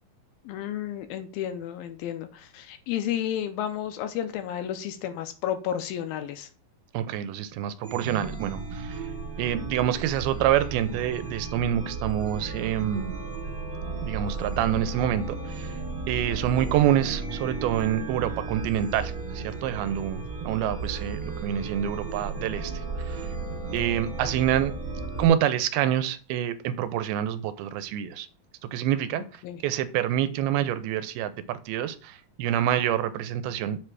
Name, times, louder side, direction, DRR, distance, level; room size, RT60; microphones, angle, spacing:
voice 1, 0.5-6.5 29.4-29.6, left 10 dB, 80° left, 9 dB, 2.4 m, -32 dB
voice 2, 6.9-9.1 9.4-13.1 14.0-15.7 16.1-23.3 23.7-24.7 25.2-28.3 28.7-33.8, right 11 dB, 90° right, 12 dB, 2.5 m, -27 dB
Chime, 7.8-25.3, right 4 dB, 70° right, 1.0 m, -34 dB
7.5 x 3.3 x 6.1 m, 0.38 s
omnidirectional pair, 4.3 m